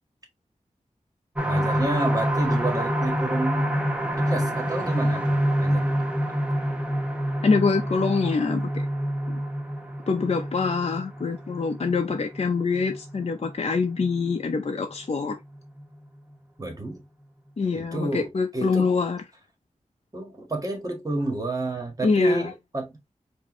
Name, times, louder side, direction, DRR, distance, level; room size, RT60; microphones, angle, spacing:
sound 1, 1.4-14.8 15.3-15.4 15.8-15.9, equal, 10° right, 0.8 m, -27 dB
voice 1, 1.4-3.6 4.2-6.0 16.6-17.0 17.7-18.9 20.1-23.0, right 2 dB, 30° right, 1.5 m, -29 dB
voice 2, 7.4-8.7 9.3-9.4 10.1-15.4 17.6-19.2 22.0-22.4, left 4 dB, 50° left, 0.6 m, -25 dB
4.5 x 2.7 x 3.0 m
wide cardioid pair, 85°, 13 cm